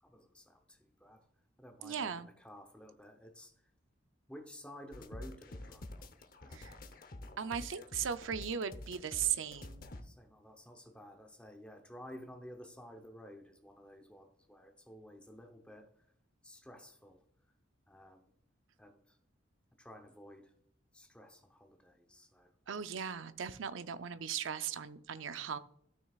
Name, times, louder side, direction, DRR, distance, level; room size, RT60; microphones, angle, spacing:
voice 1, 0.0-1.2 1.6-3.5 4.3-6.1 6.4-6.6 10.0-15.9 16.4-17.2 17.9-18.3 18.8-19.2 19.8-20.5 20.9-22.5, equal, 5° left, 4 dB, 0.8 m, -53 dB
voice 2, 1.8-2.3 6.5-6.7 7.4-9.9 22.7-25.6, right 8 dB, 90° right, 12 dB, 0.5 m, -38 dB
sound 1, 4.9-10.0, left 1 dB, 45° left, 0.8 m, -48 dB
12.5 x 6.3 x 2.4 m, 0.70 s
head